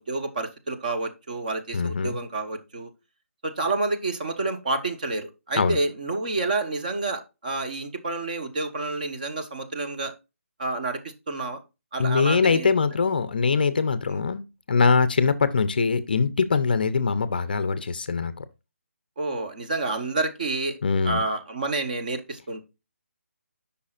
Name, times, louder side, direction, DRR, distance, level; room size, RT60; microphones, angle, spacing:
voice 1, 0.0-2.9 3.4-10.1 10.6-11.6 11.9-12.7 14.1-14.2 19.2-20.8 21.0-22.6, right 3 dB, 35° right, 1.0 m, -29 dB
voice 2, 1.7-2.2 5.5-5.8 12.0-18.5 20.8-21.2, left 5 dB, 40° left, 0.5 m, -23 dB
8.3 x 5.5 x 2.4 m
hypercardioid pair, 170°, 8 cm